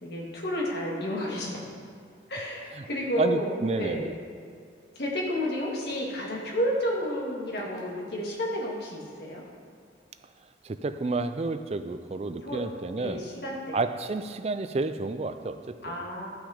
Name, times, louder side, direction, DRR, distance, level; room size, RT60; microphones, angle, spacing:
voice 1, 0.0-1.7 2.3-4.2 5.0-9.4 12.4-12.6 12.9-13.8 15.8-16.3, equal, 60° left, -3 dB, 2.0 m, -31 dB
voice 2, 3.2-4.1 10.6-13.2 13.7-15.9, right 3 dB, 35° right, 10 dB, 0.4 m, -30 dB
12.0 x 6.3 x 5.0 m, 2.2 s
head